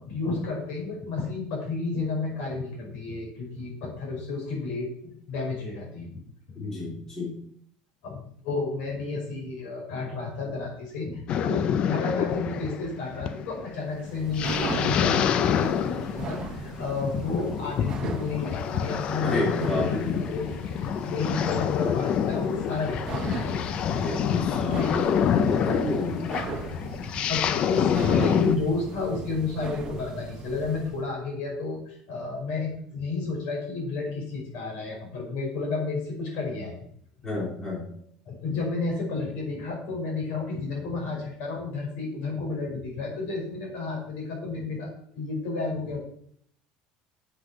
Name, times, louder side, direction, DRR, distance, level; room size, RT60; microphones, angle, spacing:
voice 1, 0.0-6.2 6.9-7.0 8.0-20.0 20.3-20.5 21.1-24.1 27.3-36.9 38.3-46.0, left 3 dB, 60° left, -1 dB, 5.4 m, -31 dB
voice 2, 6.5-7.4 19.2-20.2 23.9-26.3 37.2-37.9, left 2 dB, 15° left, -6 dB, 3.9 m, -31 dB
sound 1, 11.3-28.6, left 8 dB, 35° left, 0.5 m, -27 dB
sound 2, 13.9-31.0, right 4 dB, 25° right, 1.3 m, -38 dB
8.4 x 7.9 x 6.1 m, 0.66 s
cardioid pair, 175°, 3 cm